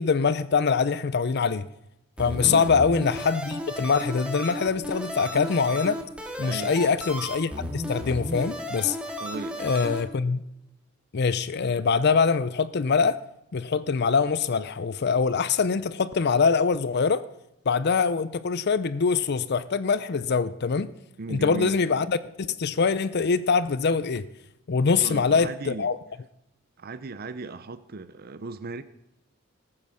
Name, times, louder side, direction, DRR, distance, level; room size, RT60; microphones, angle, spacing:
voice 1, 0.0-1.7 2.2-6.0 6.4-9.0 9.6-10.4 11.1-13.2 13.5-17.2 17.7-20.9 21.3-24.3 24.7-26.0, left 5 dB, 55° left, 0.5 m, -24 dB
sound 1, 2.2-10.0, left 1 dB, 5° right, 1.9 m, -34 dB
voice 2, 6.4-7.0 9.2-9.9 21.2-21.8 25.0-25.9 26.8-28.8, right 3 dB, 50° right, 0.6 m, -37 dB
19.0 x 8.8 x 6.3 m
head